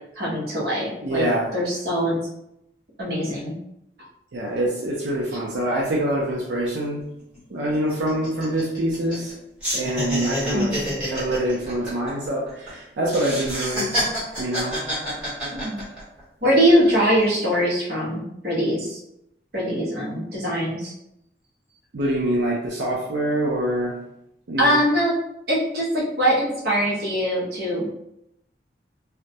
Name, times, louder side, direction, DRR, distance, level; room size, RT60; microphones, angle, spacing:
voice 1, 0.2-1.2 1.5-2.2 3.0-3.5 10.5-10.8 15.5-15.8 16.4-19.0 19.5-20.9 24.6-25.1 25.5-28.0, equal, 55° right, -5 dB, 0.8 m, -22 dB
voice 2, 1.0-1.5 4.3-7.0 7.5-9.3 9.7-10.8 11.1-13.9 14.4-14.8 21.9-23.9 24.5-24.7, right 1 dB, 85° right, -4 dB, 0.5 m, -25 dB
sound 1, 6.8-6.9 7.2-7.4 7.7-9.3 9.6-12.7 13.1-16.2 16.6-17.2, equal, 5° right, 1.0 m, -28 dB
2.2 x 2.0 x 2.7 m, 0.80 s
head